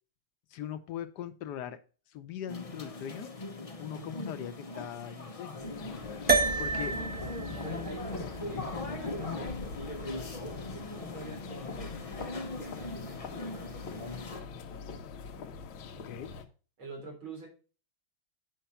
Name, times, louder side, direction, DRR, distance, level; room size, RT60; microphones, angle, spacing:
voice 1, 0.5-1.8 2.1-3.3 3.8-5.6 6.6-6.9 16.0-16.3, left 10 dB, 65° left, 10 dB, 1.3 m, -40 dB
Library Ambience, 2.5-14.4, left 2 dB, 40° left, 0.5 m, -40 dB
sound 1, 5.6-16.4, left 5 dB, 90° left, 1.8 m, -43 dB
sound 2, 6.3-10.9, right 4 dB, 5° right, 0.8 m, -32 dB
voice 2, 6.7-7.1 7.6-14.0 16.8-17.5, right 3 dB, 80° right, 0 dB, 4.2 m, -47 dB
8.0 x 5.6 x 5.7 m, 0.36 s
omnidirectional pair, 2.2 m